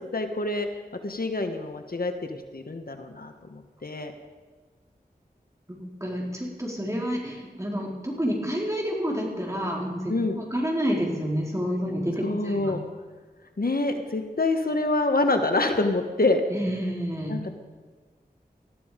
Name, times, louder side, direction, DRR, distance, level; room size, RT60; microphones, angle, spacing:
voice 1, 0.1-0.7 1.0-4.1 10.1-10.3 12.2-12.8 13.6-16.4 17.3-17.5, left 2 dB, 65° left, 6 dB, 1.4 m, -26 dB
voice 2, 5.7-12.7 16.5-17.4, equal, 20° right, -2 dB, 4.6 m, -29 dB
19.5 x 13.5 x 5.2 m, 1.4 s
wide cardioid pair, 55°, 16 cm